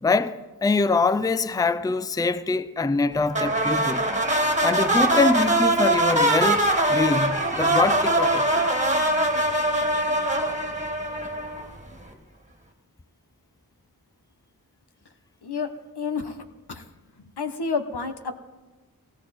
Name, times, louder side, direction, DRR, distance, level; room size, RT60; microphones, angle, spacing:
voice 1, 0.0-4.1 4.6-6.6 6.9-8.6, left 3 dB, 10° left, 0.4 m, -24 dB
sound 1, 3.3-11.8, right 1 dB, 20° right, 1.8 m, -22 dB
voice 2, 15.4-16.4 16.7-16.8 17.4-18.3, left 5 dB, 85° left, 1.2 m, -29 dB
19.0 x 15.5 x 4.3 m
wide cardioid pair, 60°, 38 cm